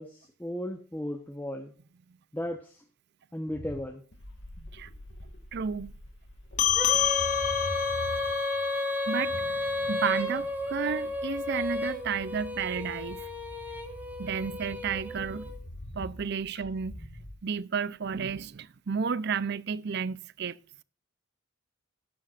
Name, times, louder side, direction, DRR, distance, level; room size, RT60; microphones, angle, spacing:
voice 1, 0.0-1.7 2.3-2.8 3.3-4.0, equal, 10° left, 1.0 m, -35 dB
sound 1, 3.5-17.3, equal, 65° left, 2.1 m, -45 dB
voice 2, 5.5-5.9 9.1-9.5 9.9-13.3 14.2-15.5 16.0-16.9 17.4-20.6, right 6 dB, 55° right, 0.5 m, -32 dB
sound 2, 6.6-11.4, left 11 dB, 35° left, 1.2 m, -30 dB
Female singing, 6.7-15.5, left 2 dB, 10° right, 1.5 m, -33 dB
13.0 x 11.0 x 2.5 m
head